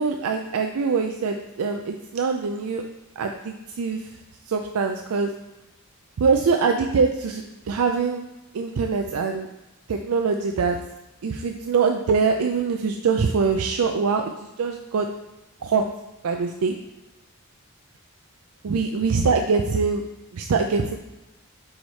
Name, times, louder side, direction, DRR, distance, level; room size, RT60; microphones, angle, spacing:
voice 1, 0.0-2.8 3.2-4.1 4.5-5.3 6.2-8.3 8.5-9.5 9.9-10.8 11.2-15.1 15.6-15.8 16.2-16.7 18.6-20.1 20.3-21.0, right 5 dB, 75° right, 4 dB, 0.4 m, -23 dB
4.9 x 4.8 x 4.0 m, 0.96 s
head